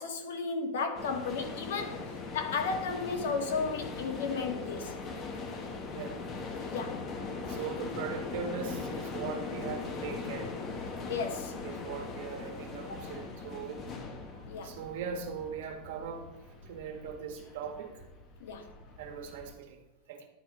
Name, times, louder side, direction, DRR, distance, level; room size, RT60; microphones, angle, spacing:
voice 1, 0.0-4.9 6.7-7.0 11.1-11.5 12.9-13.0 14.5-14.7 18.4-18.6, left 5 dB, 85° left, 5 dB, 1.5 m, -34 dB
sound 1, 0.9-19.5, left 4 dB, 30° left, 1.1 m, -40 dB
voice 2, 7.5-10.6 11.6-13.8 14.3-16.2 16.6-18.1 19.0-19.8 20.1-20.3, right 6 dB, 65° right, 5 dB, 1.5 m, -40 dB
11.0 x 4.1 x 5.9 m, 1.1 s
supercardioid pair, 160°, 0 cm